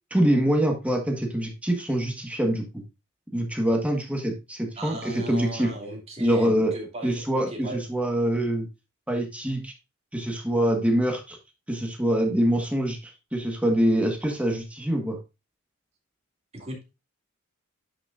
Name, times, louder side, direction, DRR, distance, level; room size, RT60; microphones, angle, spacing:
voice 1, 0.1-2.8 3.3-5.7 6.2-6.7 7.0-8.7 9.1-9.7 10.1-11.4 11.7-15.2, right 1 dB, 5° right, 2 dB, 1.6 m, -25 dB
voice 2, 4.8-7.8 16.5-16.8, right 1 dB, 30° right, 0 dB, 2.6 m, -37 dB
9.7 x 6.1 x 2.6 m, 0.26 s
head